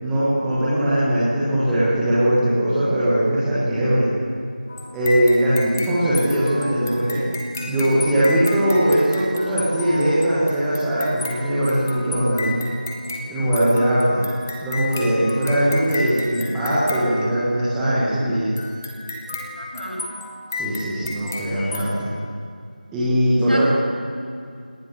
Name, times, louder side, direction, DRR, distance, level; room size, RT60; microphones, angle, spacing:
voice 1, 0.0-4.1 4.9-7.2 7.6-12.7 13.3-14.2 14.6-18.5 20.6-22.1 22.9-23.7, right 1 dB, 5° right, -11 dB, 1.4 m, -20 dB
sound 1, 4.7-17.8 18.6-21.9, left 2 dB, 15° left, 1.4 m, -34 dB
voice 2, 19.6-20.0 21.3-21.9 23.5-23.7, equal, 70° right, -1 dB, 7.9 m, -34 dB
29.0 x 18.5 x 6.6 m, 2.3 s
figure-of-eight pair, 170°, 5 cm